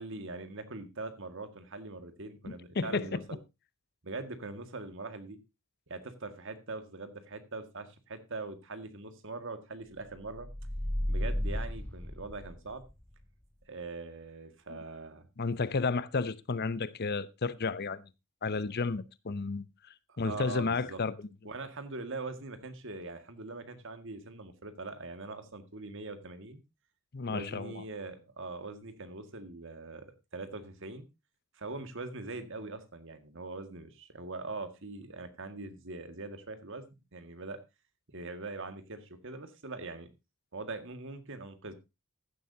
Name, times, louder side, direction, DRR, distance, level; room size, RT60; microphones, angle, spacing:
voice 1, 0.0-3.4 4.0-5.4 5.9-10.5 11.1-12.8 13.7-15.3 20.1-21.0 21.4-26.6 27.2-31.1 31.5-36.9 37.1-37.6 38.1-40.1 40.5-41.7, right 3 dB, 60° right, 1.9 m, -42 dB
voice 2, 2.4-3.2 14.7-14.8 15.4-18.0 18.4-19.6 20.2-21.1 27.1-27.8, left 4 dB, 50° left, 0.7 m, -32 dB
sound 1, 10.3-12.9, left 1 dB, 5° left, 0.6 m, -34 dB
15.5 x 11.0 x 2.7 m
head